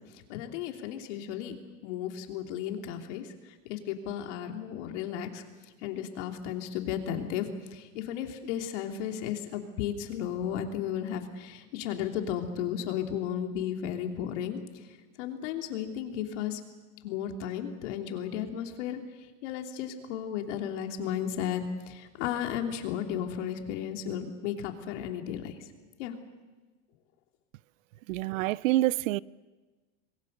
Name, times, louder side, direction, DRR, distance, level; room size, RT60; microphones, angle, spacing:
voice 1, 0.0-1.6 1.8-5.4 5.8-14.8 15.2-16.6 17.0-19.0 19.4-25.6 26.0-26.1, left 9 dB, 60° left, 3.0 m, -34 dB
voice 2, 28.1-29.2, right 16 dB, 80° right, 0.6 m, -27 dB
27.0 x 21.5 x 6.7 m
supercardioid pair, 155°, 39 cm